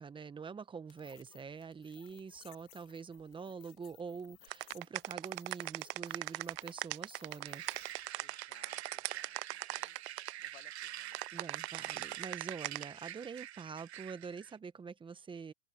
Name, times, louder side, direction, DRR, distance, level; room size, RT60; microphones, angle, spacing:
voice 1, 0.0-7.6 9.8-9.9 11.3-15.5, right 5 dB, 15° right, 1.3 m, -45 dB
sound 1, 0.9-8.1, left 23 dB, 60° left, 2.0 m, -62 dB
sound 2, 4.5-10.3 11.1-12.8, right 21 dB, 60° right, 0.5 m, -39 dB
sound 3, 7.4-14.6, right 12 dB, 85° right, 1.1 m, -46 dB
voice 2, 8.1-11.2, left 12 dB, 85° left, 1.2 m, -64 dB
hypercardioid pair, 115°, 32 cm